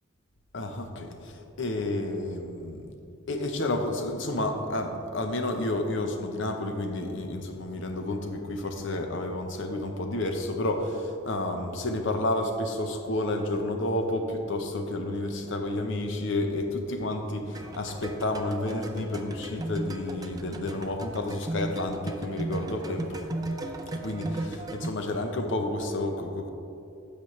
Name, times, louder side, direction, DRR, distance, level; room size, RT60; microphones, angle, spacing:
voice 1, 0.5-2.9 3.3-23.2 23.9-26.5, left 1 dB, 60° left, 5 dB, 0.8 m, -30 dB
sound 1, 17.5-24.9, right 2 dB, 20° right, 0.4 m, -36 dB
10.0 x 6.7 x 3.2 m, 2.7 s
head